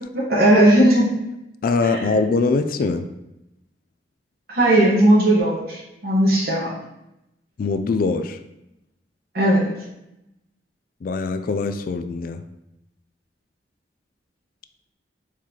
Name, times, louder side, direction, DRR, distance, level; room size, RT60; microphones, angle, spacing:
voice 1, 0.1-1.1 1.8-2.0 4.5-6.7 9.3-9.7, right 1 dB, 60° right, -5 dB, 1.3 m, -17 dB
voice 2, 1.6-3.1 7.6-8.4 11.0-12.4, left 4 dB, 50° left, 10 dB, 0.3 m, -22 dB
4.5 x 3.9 x 2.9 m, 0.87 s
head